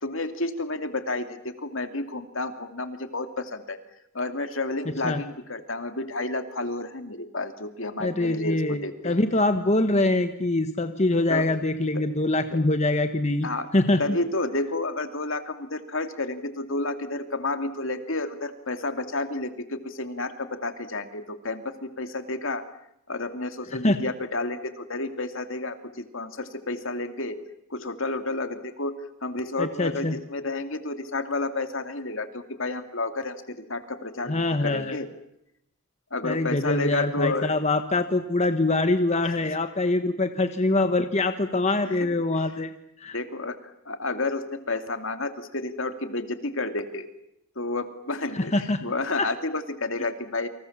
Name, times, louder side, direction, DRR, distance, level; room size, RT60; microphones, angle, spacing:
voice 1, 0.0-3.8 4.1-9.2 11.3-11.5 11.9-12.1 12.5-12.6 13.4-13.7 14.0-22.6 23.1-27.4 27.7-28.9 29.2-35.1 36.1-37.5 39.2-39.3 43.1-43.6 43.9-47.1 47.6-48.5 48.8-50.5, left 2 dB, 60° left, 8 dB, 2.7 m, -31 dB
voice 2, 8.0-14.2 23.7-24.0 29.6-30.1 34.3-35.0 36.2-42.7 43.0-43.2 48.3-48.8 49.2-49.3, left 2 dB, 30° left, 8 dB, 1.4 m, -24 dB
29.5 x 27.0 x 7.4 m, 0.79 s
head